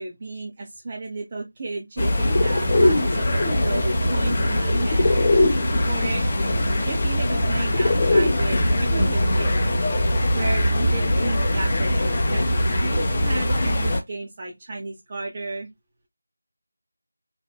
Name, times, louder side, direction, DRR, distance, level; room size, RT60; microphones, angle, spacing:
voice 1, 0.0-6.2 6.8-9.6 9.9-15.7, right 3 dB, 30° right, 0.5 m, -33 dB
sound 1, 2.0-14.0, left 1 dB, 30° left, 0.6 m, -21 dB
2.8 x 2.0 x 2.2 m
figure-of-eight pair, 165°, 0 cm